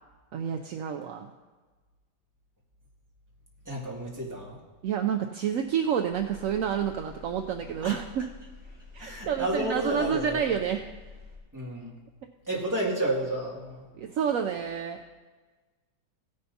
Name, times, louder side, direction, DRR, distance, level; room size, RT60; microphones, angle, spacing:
voice 1, 0.3-1.3 4.8-8.3 8.9-10.8 14.0-15.0, right 8 dB, 70° right, 4 dB, 0.8 m, -29 dB
voice 2, 3.7-4.6 7.8-8.0 9.0-10.5 11.5-11.9 12.5-13.8, right 1 dB, 10° right, -5 dB, 2.1 m, -31 dB
sound 1, 6.1-11.4, left 4 dB, 35° left, 2.6 m, -48 dB
16.5 x 10.0 x 2.8 m, 1.3 s
omnidirectional pair, 1.9 m